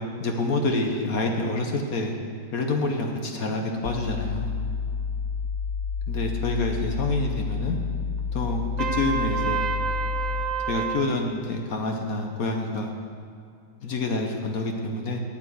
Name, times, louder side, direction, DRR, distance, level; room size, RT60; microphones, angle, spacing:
voice 1, 0.2-2.1 2.5-4.5 6.1-7.8 8.3-9.6 10.7-12.9 13.8-15.2, left 2 dB, 60° left, 2 dB, 1.3 m, -27 dB
sound 1, 3.8-10.6, left 5 dB, 75° left, 0.6 m, -30 dB
Trumpet, 8.8-11.0, right 7 dB, 65° right, 0.4 m, -29 dB
8.8 x 8.2 x 8.4 m, 2.4 s
omnidirectional pair, 1.9 m